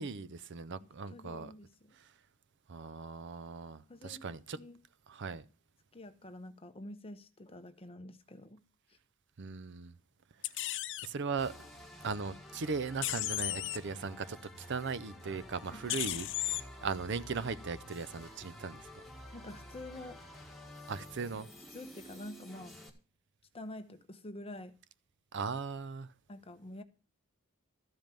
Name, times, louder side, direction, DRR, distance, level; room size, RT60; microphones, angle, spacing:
voice 1, 0.0-1.5 1.9-2.1 2.7-4.6 5.1-5.4 9.4-9.9 10.5-10.7 11.0-11.5 12.0-18.9 20.9-21.5 25.3-26.1, right 5 dB, 55° right, 0.6 m, -38 dB
voice 2, 1.1-1.7 3.9-4.2 4.5-4.8 5.9-8.6 8.9-9.0 15.7-16.0 19.3-20.2 21.7-22.7 23.5-24.7 26.3-26.8, left 1 dB, 25° left, 0.9 m, -47 dB
sound 1, 10.4-11.1 13.0-13.8 15.9-16.6, left 16 dB, 60° left, 0.5 m, -34 dB
sound 2, 11.4-22.9, left 1 dB, ahead, 1.7 m, -51 dB
13.5 x 5.3 x 7.5 m
head